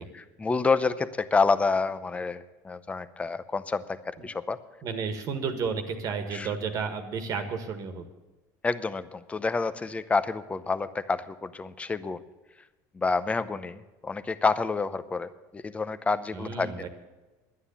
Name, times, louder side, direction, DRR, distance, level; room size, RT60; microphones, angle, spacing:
voice 1, 0.0-4.6 6.3-6.5 8.6-12.2 12.9-16.9, left 4 dB, 15° left, 14 dB, 0.7 m, -28 dB
voice 2, 4.8-8.0 16.3-16.9, right 5 dB, 45° right, 6 dB, 1.6 m, -32 dB
11.0 x 9.6 x 7.1 m, 1.1 s
cardioid pair, 125°, 8 cm